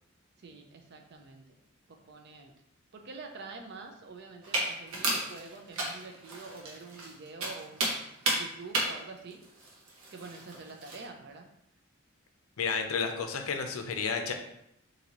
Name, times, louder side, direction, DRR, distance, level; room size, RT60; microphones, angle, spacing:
voice 1, 0.4-1.6 1.9-2.5 2.9-9.4 10.1-11.5, right 3 dB, 50° right, 4 dB, 0.5 m, -46 dB
sound 1, 4.4-11.1, right 2 dB, 85° right, 0.9 m, -34 dB
voice 2, 12.6-14.3, left 5 dB, 80° left, 5 dB, 0.5 m, -31 dB
4.0 x 2.6 x 2.9 m, 0.78 s
head